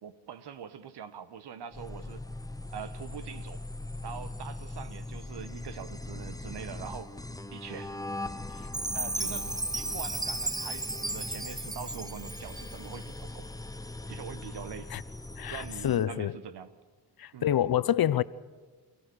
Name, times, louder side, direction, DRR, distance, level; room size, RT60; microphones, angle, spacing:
voice 1, 0.0-2.2 2.7-3.6 4.0-7.1 7.5-8.0 8.9-13.5 14.1-14.9 15.5-16.7 17.3-17.5, right 8 dB, 65° right, 1.5 m, -43 dB
sound 1, 1.7-16.1, left 2 dB, 10° left, 0.9 m, -40 dB
Chime, 8.7-13.0, right 2 dB, 10° right, 0.6 m, -34 dB
voice 2, 15.4-16.3 17.2-18.2, left 11 dB, 55° left, 0.8 m, -27 dB
28.5 x 16.5 x 6.5 m
supercardioid pair, 60°, 43 cm